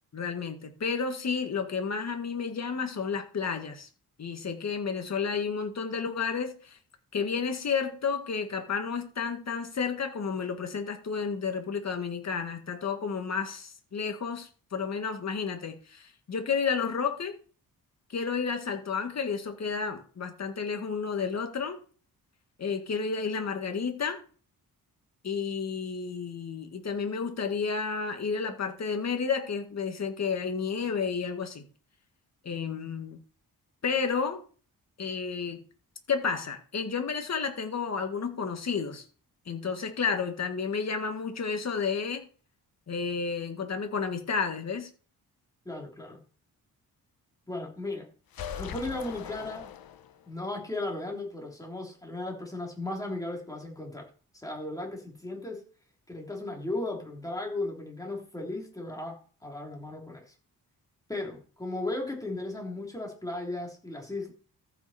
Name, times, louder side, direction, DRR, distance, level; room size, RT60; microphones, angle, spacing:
voice 1, 0.1-3.9 4.2-6.8 7.1-17.4 18.1-21.8 22.6-24.2 25.2-31.6 32.4-33.2 33.8-34.4 35.0-35.6 36.1-39.0 39.5-42.3 42.9-44.9, left 5 dB, 45° left, 1.9 m, -31 dB
voice 2, 45.7-46.2 47.5-48.1 48.6-49.7 50.3-54.1 54.4-55.6 56.1-60.2 61.1-64.3, left 2 dB, 10° left, 3.4 m, -36 dB
sound 1, 48.3-50.4, left 9 dB, 70° left, 1.0 m, -40 dB
14.0 x 6.0 x 4.4 m
wide cardioid pair, 130°, 37 cm